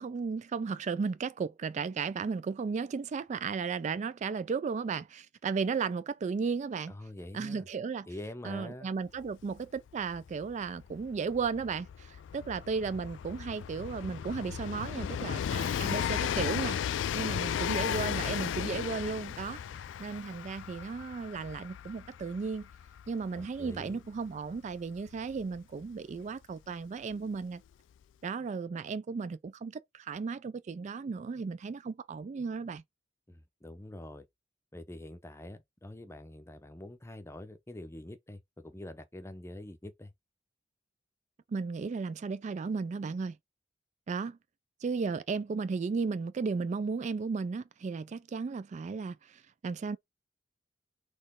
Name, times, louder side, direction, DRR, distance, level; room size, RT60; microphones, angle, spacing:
voice 1, 0.0-6.9 7.3-8.1 8.4-19.6 20.0-22.7 23.1-27.6 28.2-32.8 41.5-43.4 44.1-44.4 44.8-50.0, right 5 dB, 40° right, 0.3 m, -35 dB
voice 2, 6.9-7.7 8.1-8.9 23.3-24.0 33.3-34.3 34.7-40.1, left 1 dB, 15° left, 0.6 m, -45 dB
Train, 9.2-9.3 9.5-26.1 27.1-27.2, left 9 dB, 85° left, 0.3 m, -36 dB
4.2 x 3.1 x 3.6 m
head